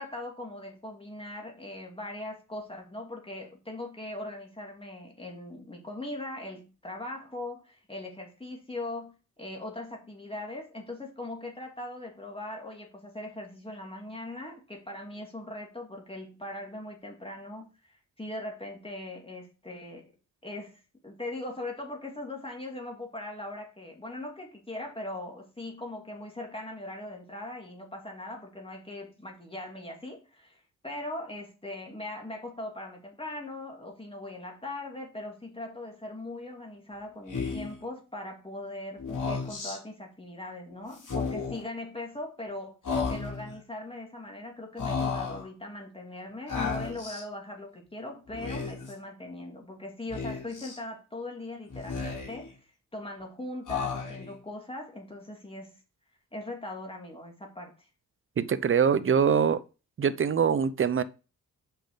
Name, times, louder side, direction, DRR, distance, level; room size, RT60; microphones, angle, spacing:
voice 1, 0.0-20.1 20.4-42.8 43.1-52.5 52.9-55.8 56.3-57.9, left 1 dB, 15° left, 2.5 m, -40 dB
Speech, 37.3-37.8 39.0-39.8 41.0-41.6 42.8-43.5 44.8-45.4 46.5-47.2 48.3-48.9 50.1-50.8 51.7-52.5 53.7-54.4, left 5 dB, 60° left, 3.6 m, -33 dB
voice 2, 58.4-59.6 60.0-61.0, right 7 dB, 35° right, 0.6 m, -23 dB
6.9 x 5.7 x 3.9 m
cardioid pair, 60°, 35 cm